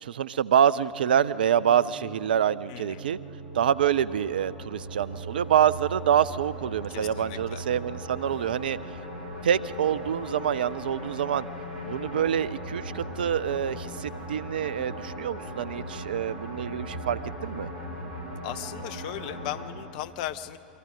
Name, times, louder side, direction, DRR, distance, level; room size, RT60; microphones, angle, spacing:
voice 1, 0.0-3.2 3.5-8.8 9.4-11.5 11.8-17.7, right 9 dB, 70° right, 18 dB, 0.5 m, -26 dB
sound 1, 0.7-19.6, equal, 80° left, 4.5 m, -39 dB
voice 2, 2.7-3.1 6.9-7.6 18.4-20.6, left 13 dB, 55° left, 14 dB, 0.7 m, -37 dB
29.5 x 23.5 x 3.9 m, 2.7 s
figure-of-eight pair, 85°, 5 cm